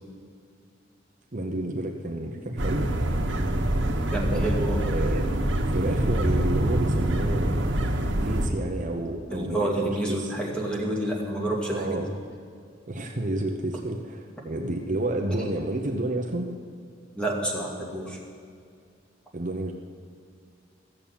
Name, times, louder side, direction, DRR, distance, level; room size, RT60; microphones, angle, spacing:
voice 1, 1.3-2.9 4.3-4.5 4.8-5.3 5.7-7.5 8.2-10.3 11.7-12.1 12.9-16.5 19.3-19.7, right 1 dB, 45° right, 2 dB, 0.9 m, -30 dB
sound 1, 2.6-8.5, right 1 dB, 80° right, 1.4 m, -25 dB
voice 2, 4.1-4.8 6.3-6.4 9.3-12.0 17.2-18.2, right 1 dB, 5° left, -2 dB, 2.3 m, -29 dB
14.5 x 7.2 x 8.8 m, 2.2 s
head